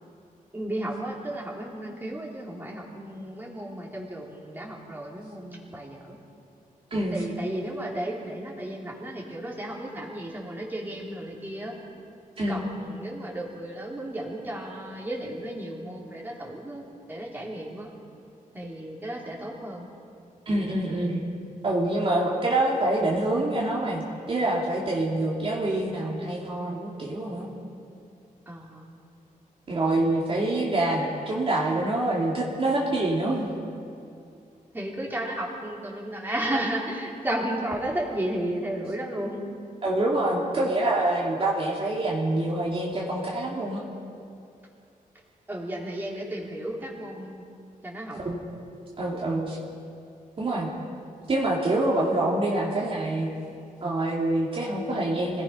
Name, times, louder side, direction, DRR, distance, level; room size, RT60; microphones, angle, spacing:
voice 1, 0.5-6.2 7.1-11.8 12.5-16.8 17.1-17.9 18.5-19.9 28.5-28.9 34.7-39.4 45.5-47.4 47.8-48.2, right 1 dB, 15° right, -3 dB, 3.4 m, -33 dB
voice 2, 12.4-12.7 20.5-21.2 21.6-27.5 29.7-33.6 39.8-43.8 48.1-48.4 49.0-49.6 50.4-50.7 51.3-53.3 53.8-55.4, right 2 dB, 40° right, -4 dB, 2.6 m, -26 dB
26.0 x 17.5 x 5.6 m, 2.4 s
wide cardioid pair, 135°, 15 cm